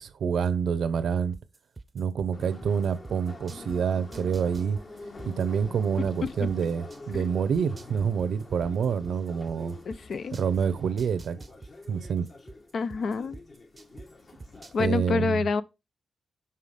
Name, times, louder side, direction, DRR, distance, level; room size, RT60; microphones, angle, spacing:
voice 1, 0.0-1.4 1.9-4.8 5.2-9.8 10.3-11.4 11.9-12.3 14.8-15.4, right 7 dB, 80° right, 0.7 m, -27 dB
sound 1, 1.3-3.8 4.1-7.2 7.5-10.6 11.0-14.1 14.4-14.9, right 3 dB, 30° right, 0.6 m, -45 dB
Subway metro underground, 2.3-14.8, left 2 dB, 45° left, 1.5 m, -46 dB
voice 2, 9.9-10.4 12.7-13.4 14.7-15.6, left 4 dB, 65° left, 0.6 m, -28 dB
5.7 x 5.7 x 5.0 m
wide cardioid pair, 110°, 0 cm